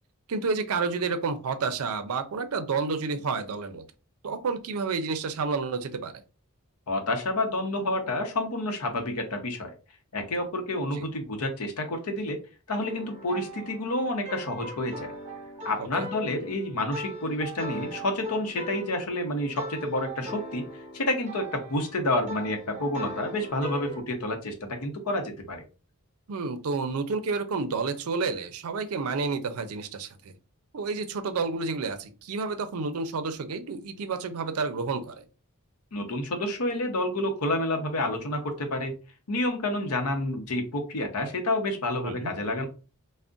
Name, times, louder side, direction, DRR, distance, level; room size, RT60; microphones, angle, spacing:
voice 1, 0.3-3.9 4.2-6.1 11.0-11.1 15.8-16.1 26.3-30.3 30.7-35.2 42.0-42.3, right 4 dB, 75° right, 10 dB, 0.5 m, -30 dB
voice 2, 6.9-9.7 10.1-12.4 12.7-15.1 15.6-20.6 20.9-25.6 35.9-38.9 39.3-42.7, left 1 dB, 80° left, 5 dB, 0.7 m, -29 dB
sound 1, 12.7-24.0, right 1 dB, 30° right, 0.8 m, -40 dB
2.5 x 2.1 x 3.6 m, 0.34 s
head